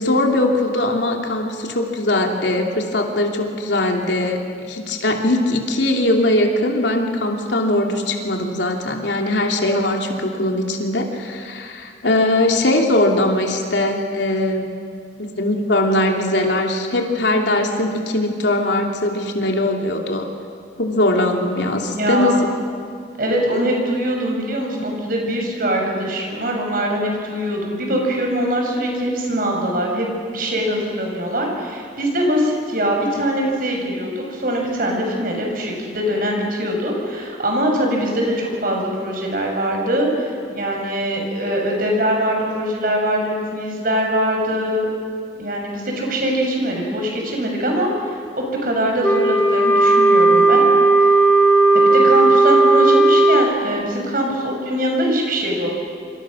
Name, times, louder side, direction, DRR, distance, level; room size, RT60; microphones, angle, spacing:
voice 1, 0.0-14.7 15.2-20.3 20.8-22.5, left 1 dB, 90° left, 2 dB, 3.0 m, -20 dB
voice 2, 21.9-22.4 23.2-30.1 30.3-44.9 45.4-50.6 51.0-51.1 51.7-55.7, equal, 55° right, 1 dB, 6.0 m, -22 dB
Wind instrument woodwind instrument, 49.0-53.5, right 2 dB, 10° left, 2.9 m, -14 dB
27.0 x 26.0 x 6.4 m, 2.2 s
head